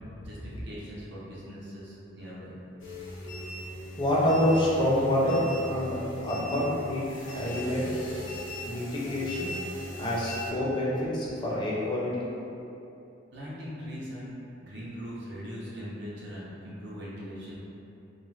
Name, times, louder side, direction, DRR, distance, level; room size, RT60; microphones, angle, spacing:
voice 1, 0.2-2.5 13.3-14.3 14.6-17.6, equal, 60° right, -7 dB, 0.7 m, -40 dB
sound 1, 2.8-10.5, left 1 dB, 80° left, 0.6 m, -39 dB
voice 2, 4.0-7.0 7.3-7.9 8.6-9.5 10.0-12.3, left 1 dB, 25° left, -7 dB, 0.5 m, -27 dB
2.4 x 2.4 x 3.1 m, 2.8 s
head